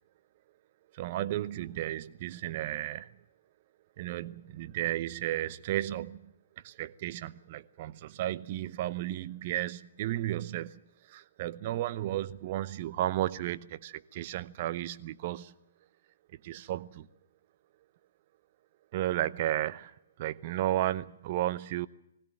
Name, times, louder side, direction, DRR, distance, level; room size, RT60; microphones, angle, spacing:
voice 1, 0.9-3.1 4.0-15.5 16.3-17.1 18.9-21.9, right 14 dB, 40° right, 0.8 m, -34 dB
20.5 x 16.5 x 9.1 m
figure-of-eight pair, 125°, 0 cm